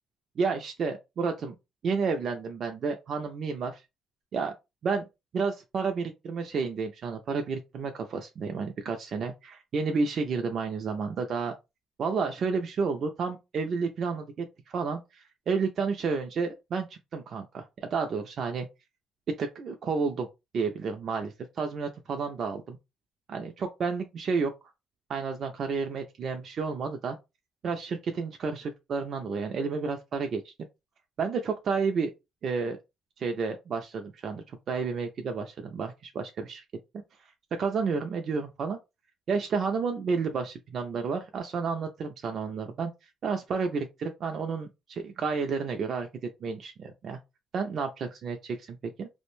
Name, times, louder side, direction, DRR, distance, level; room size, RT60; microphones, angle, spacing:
voice 1, 0.4-1.6 1.8-3.8 4.3-4.5 4.8-5.0 5.3-11.5 12.0-17.7 17.9-18.7 19.4-20.3 20.5-22.8 23.3-24.5 25.1-27.2 27.6-30.5 31.2-32.1 32.4-32.8 33.2-36.6 37.6-38.8 39.3-46.1 46.4-47.2 47.5-49.1, right 5 dB, 45° right, 0.3 m, -31 dB
2.5 x 2.1 x 3.0 m
cardioid pair, 155°, 0 cm